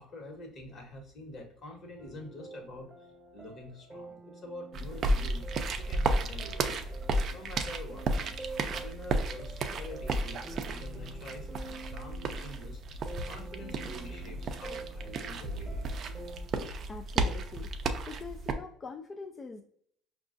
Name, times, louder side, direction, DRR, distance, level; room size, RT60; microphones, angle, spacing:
voice 1, 0.0-5.5 5.8-6.9 7.3-15.9 16.8-16.9, left 1 dB, 45° left, 2 dB, 1.2 m, -47 dB
sound 1, 2.0-16.5, right 3 dB, 10° right, 0.8 m, -48 dB
sound 2, 4.7-18.5, right 2 dB, 45° right, 0.4 m, -33 dB
voice 2, 16.9-17.7 18.1-19.6, left 4 dB, 25° left, 4 dB, 0.3 m, -43 dB
5.0 x 2.3 x 2.5 m, 0.66 s
supercardioid pair, 110°, 0 cm